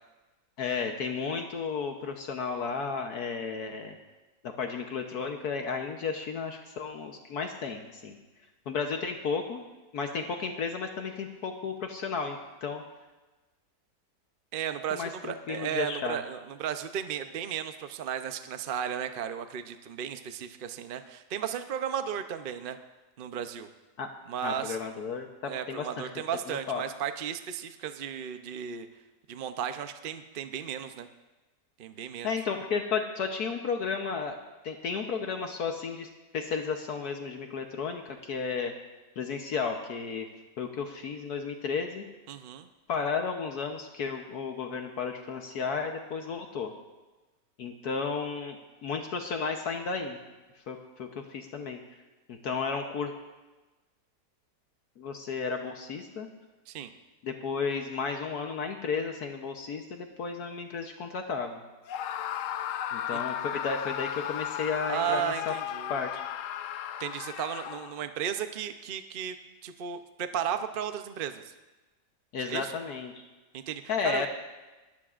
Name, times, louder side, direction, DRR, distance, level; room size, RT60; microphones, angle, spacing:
voice 1, 0.6-4.0 4.4-8.2 8.7-9.6 9.9-12.8 14.9-16.2 24.0-24.1 24.4-26.1 26.5-26.8 32.2-34.4 34.6-38.7 39.2-40.3 40.6-42.0 42.9-46.7 47.6-48.6 48.8-50.2 50.7-51.8 52.3-53.1 55.0-56.3 57.2-61.6 62.9-65.5 65.9-66.2 72.3-73.3 73.9-74.3, left 5 dB, 65° left, 4 dB, 1.4 m, -33 dB
voice 2, 14.5-22.8 23.2-23.7 24.3-24.8 25.4-28.9 29.3-31.1 31.8-32.3 42.3-42.7 56.7-56.9 63.1-63.2 64.9-66.0 67.0-69.4 69.6-71.5 72.5-72.7 73.5-74.3, right 8 dB, 60° right, 9 dB, 0.5 m, -34 dB
Screaming, 61.9-68.1, left 10 dB, 85° left, 0.7 m, -35 dB
20.5 x 15.0 x 2.5 m, 1.2 s
omnidirectional pair, 1.9 m